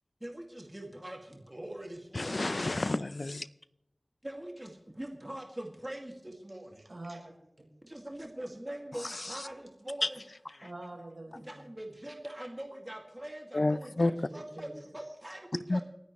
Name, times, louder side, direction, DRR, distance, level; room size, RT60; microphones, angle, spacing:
voice 1, 0.2-2.4 4.2-6.8 7.8-10.2 11.4-15.8, right 1 dB, 20° right, 2.0 m, -43 dB
voice 2, 2.2-3.5 13.5-14.1 15.7-15.8, left 2 dB, 55° left, 0.5 m, -29 dB
voice 3, 6.8-7.3 7.6-7.7 10.6-11.6 14.0-14.8, right 2 dB, 65° right, 5.2 m, -45 dB
29.0 x 9.8 x 3.1 m
wide cardioid pair, 55°, 0 cm